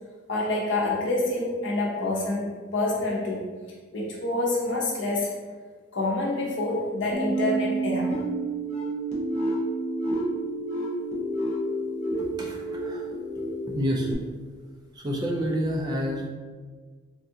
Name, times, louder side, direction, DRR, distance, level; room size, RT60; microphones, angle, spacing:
voice 1, 0.3-3.4 3.9-5.3 5.9-8.2, left 2 dB, 65° left, -3 dB, 0.8 m, -27 dB
sound 1, 7.1-14.1, right 2 dB, 35° left, 0.7 m, -29 dB
voice 2, 12.4-13.1 13.7-14.1 14.9-16.3, equal, 20° right, -1 dB, 0.3 m, -28 dB
3.5 x 2.4 x 2.7 m, 1.5 s
head